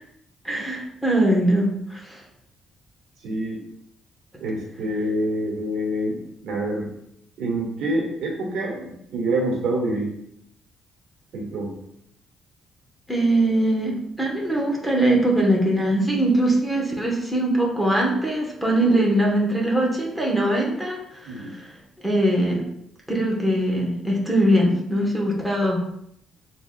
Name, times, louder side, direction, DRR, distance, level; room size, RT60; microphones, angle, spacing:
voice 1, 0.4-2.2 13.1-22.6 23.1-25.8, right 1 dB, ahead, -3 dB, 1.2 m, -22 dB
voice 2, 3.2-3.6 4.4-6.9 7.4-10.1 11.3-11.7 21.2-21.5, right 1 dB, 80° right, -2 dB, 1.6 m, -26 dB
6.7 x 2.7 x 2.3 m, 0.74 s
cardioid pair, 90°, 0 cm